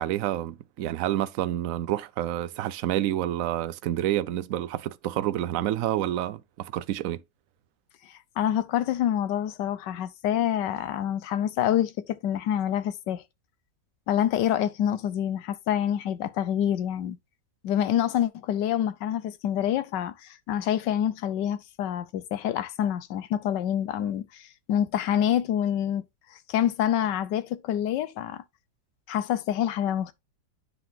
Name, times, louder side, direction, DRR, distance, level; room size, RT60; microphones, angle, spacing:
voice 1, 0.0-7.2, right 13 dB, 70° right, 0.8 m, -28 dB
voice 2, 8.0-13.2 14.1-17.2 17.6-26.0 26.3-28.4 29.1-30.1, left 10 dB, 90° left, 1.4 m, -27 dB
9.5 x 3.8 x 3.9 m
omnidirectional pair, 1.8 m